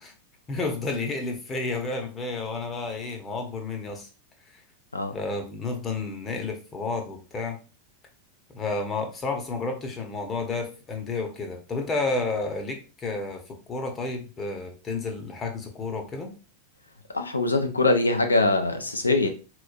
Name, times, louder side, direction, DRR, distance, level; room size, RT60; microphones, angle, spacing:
voice 1, 0.5-4.1 5.1-7.6 8.5-16.3, left 3 dB, 20° left, 4 dB, 0.9 m, -31 dB
voice 2, 17.1-19.3, left 2 dB, 80° left, 6 dB, 0.6 m, -23 dB
4.1 x 3.1 x 2.4 m, 0.34 s
figure-of-eight pair, 90°, 0 cm